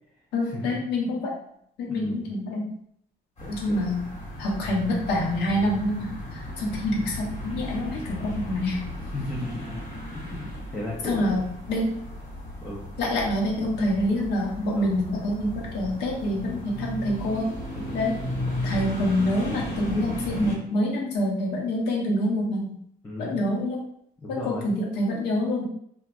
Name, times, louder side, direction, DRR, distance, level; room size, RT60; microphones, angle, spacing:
voice 1, 0.3-1.3 1.8-2.7 3.5-4.0 4.4-6.1 6.6-8.8 11.0-11.9 13.0-17.5 17.9-18.2 18.6-22.7 23.2-23.8 24.3-25.6, left 1 dB, 85° left, -1 dB, 0.9 m, -26 dB
voice 2, 1.9-2.2 3.4-3.8 9.1-9.8 10.1-11.3 12.6-12.8 14.8-14.9 17.7-18.0 23.0-23.4 24.2-24.7, left 1 dB, 15° left, -5 dB, 0.7 m, -35 dB
sound 1, 3.4-20.6, left 1 dB, 35° left, 1.4 m, -35 dB
3.2 x 2.3 x 2.5 m, 0.70 s
cardioid pair, 110°, 17 cm